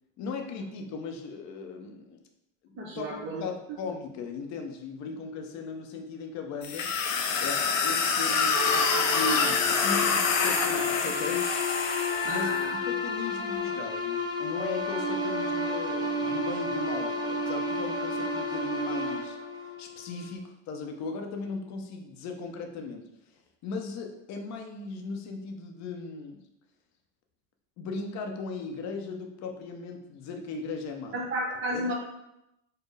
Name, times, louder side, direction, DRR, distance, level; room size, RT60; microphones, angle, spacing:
voice 1, 0.2-2.2 2.6-6.9 7.4-11.5 12.2-23.0 23.6-26.4 27.8-31.2 31.7-31.9, left 4 dB, 45° left, 4 dB, 0.7 m, -37 dB
voice 2, 2.7-3.4 3.7-3.8 12.2-12.7 31.1-31.9, right 1 dB, 30° right, -6 dB, 0.8 m, -32 dB
sound 1, 6.6-12.6, left 5 dB, 90° left, 0.6 m, -26 dB
sound 2, 8.5-20.3, left 2 dB, 10° right, 0.3 m, -31 dB
4.4 x 2.1 x 3.2 m, 0.86 s
supercardioid pair, 105°, 38 cm